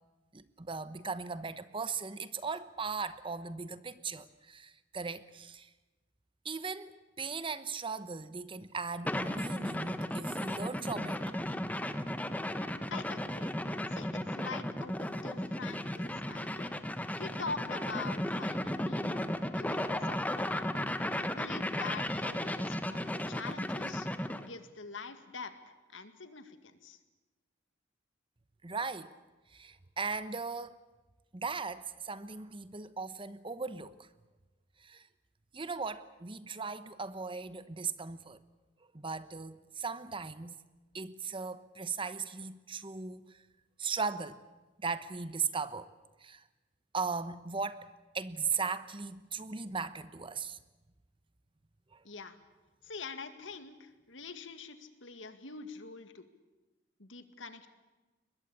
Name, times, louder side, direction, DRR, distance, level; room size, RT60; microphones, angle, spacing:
voice 1, 0.3-5.7 6.4-11.2 28.6-29.1 29.5-30.8 31.3-34.1 34.8-35.1 35.5-38.4 38.9-40.6 40.9-43.4 43.8-44.4 44.8-45.9 46.2-46.4 46.9-47.9 48.1-50.6 51.9-52.0, right 5 dB, 25° right, 0.9 m, -38 dB
sound 1, 9.1-24.5, left 1 dB, 10° left, 1.2 m, -35 dB
voice 2, 12.9-13.5 13.9-16.7 17.1-20.5 21.2-24.1 24.4-27.0 52.0-52.4 52.8-56.3 57.0-57.7, left 4 dB, 80° left, 2.1 m, -45 dB
22.5 x 21.0 x 8.5 m
head